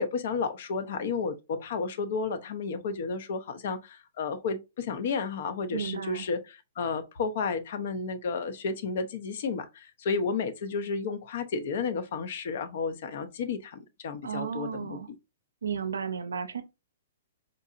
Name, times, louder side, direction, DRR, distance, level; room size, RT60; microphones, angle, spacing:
voice 1, 0.0-15.0, left 5 dB, 60° left, 0.6 m, -32 dB
voice 2, 5.7-6.3 14.2-15.1 15.6-16.6, right 7 dB, 80° right, 0.5 m, -33 dB
3.8 x 2.7 x 2.4 m
hypercardioid pair, 115°, 0 cm